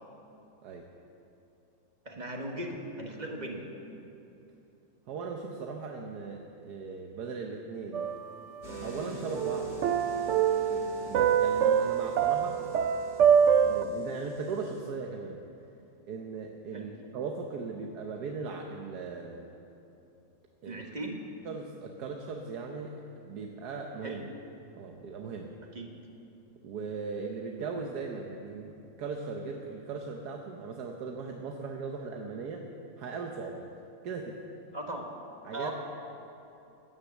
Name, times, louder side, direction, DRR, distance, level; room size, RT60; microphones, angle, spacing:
voice 1, 2.0-3.6 16.7-16.9 20.6-21.2 24.0-24.3 25.7-25.9 34.7-35.1 35.5-35.7, right 1 dB, 30° right, 1 dB, 1.6 m, -38 dB
voice 2, 5.1-8.1 8.8-9.7 10.7-12.6 13.6-15.4 16.0-19.5 20.6-20.8 21.4-24.2 24.8-25.5 26.6-32.7 33.0-33.7 34.0-34.4 35.4-35.7, right 4 dB, 85° right, 2 dB, 1.5 m, -38 dB
sound 1, 7.9-9.0 9.3-13.8, right 8 dB, 65° right, 0.8 m, -25 dB
sound 2, 8.6-14.9, left 2 dB, 80° left, 3.5 m, -46 dB
17.0 x 10.0 x 7.2 m, 2.9 s
omnidirectional pair, 1.7 m